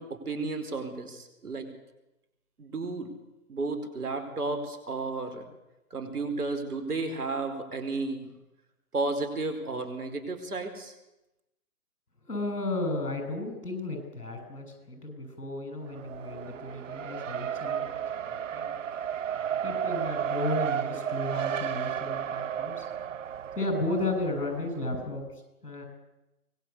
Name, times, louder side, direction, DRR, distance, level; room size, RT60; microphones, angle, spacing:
voice 1, 0.0-1.7 2.6-3.1 3.5-5.4 5.9-8.3 8.9-10.9, right 3 dB, 80° right, 7 dB, 4.7 m, -33 dB
voice 2, 12.2-18.8 19.6-22.9 23.6-25.9, left 2 dB, 85° left, 5 dB, 7.3 m, -34 dB
Race car auto racing, 15.8-24.9, right 9 dB, 55° right, 1.3 m, -33 dB
24.0 x 20.0 x 8.4 m, 0.94 s
figure-of-eight pair, 135°, 45 cm